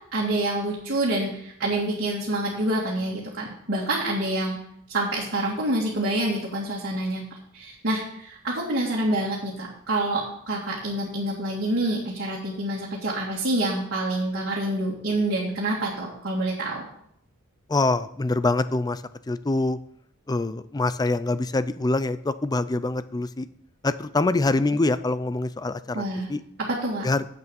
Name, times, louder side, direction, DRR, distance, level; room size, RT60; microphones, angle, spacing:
voice 1, 0.1-4.6 4.9-16.9 25.9-26.3 26.7-27.1, right 1 dB, 55° right, -5 dB, 2.1 m, -27 dB
voice 2, 17.7-19.8 20.3-23.5 23.8-26.0 26.3-26.4 27.0-27.2, left 2 dB, 20° left, 13 dB, 0.4 m, -25 dB
8.1 x 6.8 x 7.0 m, 0.70 s
head